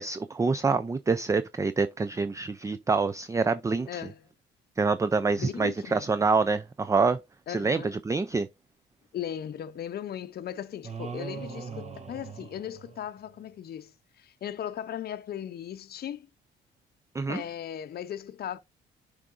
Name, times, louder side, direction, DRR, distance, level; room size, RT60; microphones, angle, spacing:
voice 1, 0.0-4.0 4.8-7.2 7.5-8.5 17.1-17.4, right 4 dB, 15° right, 0.4 m, -26 dB
voice 2, 3.9-4.2 5.4-6.1 7.5-7.9 9.1-13.9 14.2-16.3 17.3-18.6, left 10 dB, 55° left, 0.6 m, -37 dB
sound 1, 10.8-13.3, right 5 dB, 35° right, 1.1 m, -40 dB
11.0 x 4.9 x 2.5 m
cardioid pair, 90°, 20 cm